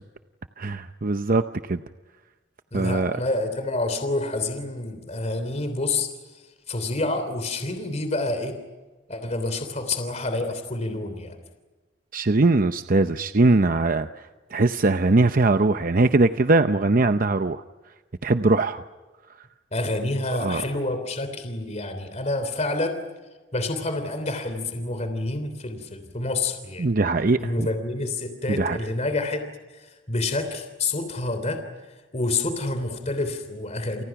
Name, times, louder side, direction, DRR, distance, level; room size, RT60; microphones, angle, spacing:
voice 1, 0.6-1.8 2.7-3.2 12.1-14.1 14.5-17.6 18.2-18.8 20.3-20.6 26.8-27.7 28.5-28.8, right 3 dB, 50° right, 9 dB, 0.7 m, -21 dB
voice 2, 2.7-8.6 9.1-11.3 19.7-23.0 23.5-26.9 27.4-29.4 29.7-31.6 31.9-34.0, left 2 dB, 40° left, 8 dB, 3.2 m, -28 dB
29.5 x 29.0 x 6.0 m, 1.3 s
head